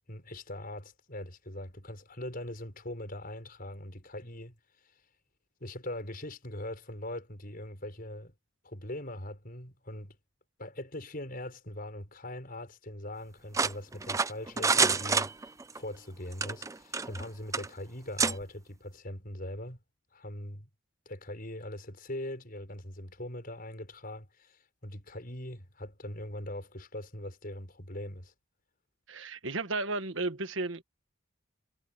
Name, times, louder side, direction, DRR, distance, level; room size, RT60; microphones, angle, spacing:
voice 1, 0.1-4.5 5.6-8.3 8.6-10.2 10.6-15.3 15.7-19.8 20.1-20.7 21.0-28.3, left 1 dB, 45° left, 6.7 m, -41 dB
sound 1, 13.5-15.8 16.3-17.2 17.5-17.7 18.2-18.3, right 4 dB, 15° right, 0.5 m, -27 dB
voice 2, 29.1-30.8, right 2 dB, 65° right, 1.6 m, -33 dB
head